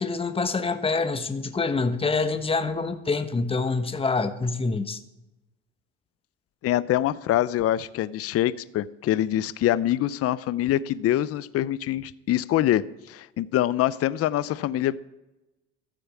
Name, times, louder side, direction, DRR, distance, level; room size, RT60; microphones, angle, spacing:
voice 1, 0.0-5.0, left 4 dB, 15° left, 1.2 m, -26 dB
voice 2, 6.6-15.0, left 13 dB, 45° left, 0.6 m, -25 dB
13.0 x 6.8 x 8.5 m
hypercardioid pair, 80°, 34 cm